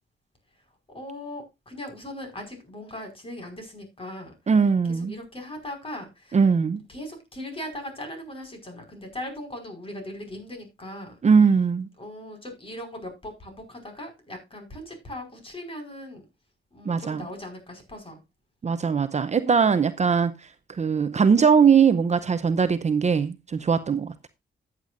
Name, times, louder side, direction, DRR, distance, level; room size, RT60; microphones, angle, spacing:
voice 1, 0.5-4.5 4.8-6.4 6.9-11.2 12.0-16.3 16.7-18.2, left 1 dB, 30° left, 5.3 m, -39 dB
voice 2, 4.5-5.1 6.3-6.8 11.2-11.9 16.9-17.2 18.6-24.3, right 6 dB, 35° right, 0.7 m, -21 dB
13.5 x 8.3 x 2.5 m
cardioid pair, 75°, 20 cm